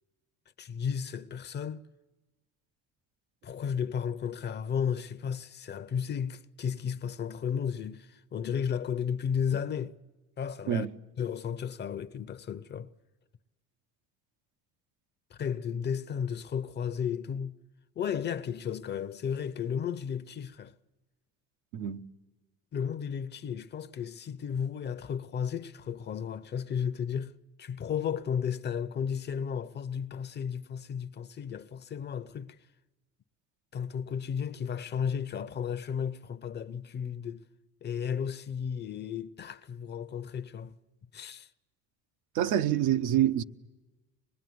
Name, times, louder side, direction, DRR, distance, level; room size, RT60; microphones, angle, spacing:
voice 1, 0.6-1.8 3.4-9.9 10.4-10.9 11.2-12.9 15.3-17.5 18.0-20.7 22.7-27.3 27.6-32.6 33.7-37.4 37.8-40.7 41.1-41.5, left 7 dB, 35° left, 0.8 m, -33 dB
voice 2, 21.7-22.0 42.3-43.4, right 11 dB, 75° right, 1.1 m, -26 dB
25.0 x 21.0 x 9.5 m
cardioid pair, 135°, 31 cm